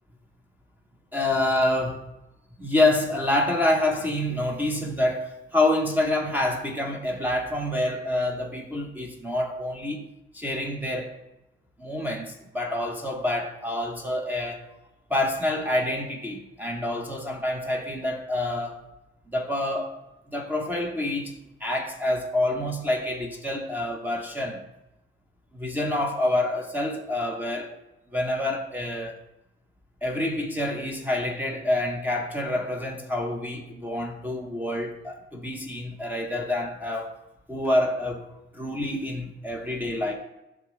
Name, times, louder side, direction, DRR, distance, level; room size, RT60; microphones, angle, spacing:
voice 1, 1.1-2.0 2.6-10.1 10.3-11.1 11.8-14.7 15.1-18.8 19.3-20.0 20.3-21.3 21.6-24.6 25.5-27.8 28.1-29.2 30.0-37.1 37.5-38.3 38.5-40.1, left 1 dB, 10° right, 0.9 m, -27 dB
9.0 x 3.5 x 6.3 m
cardioid pair, 90°, 20 cm